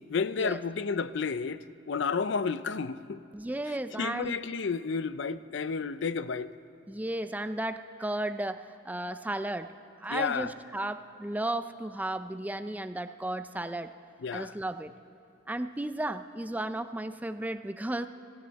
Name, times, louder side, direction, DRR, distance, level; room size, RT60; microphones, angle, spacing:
voice 1, 0.0-1.6 1.9-3.2 4.0-6.5 10.1-10.5 14.2-14.5, left 5 dB, 65° left, 0.5 m, -31 dB
voice 2, 3.3-4.3 6.9-9.7 10.0-13.9 14.3-14.9 15.5-18.1, right 1 dB, 10° right, 0.4 m, -34 dB
25.0 x 14.0 x 4.1 m
head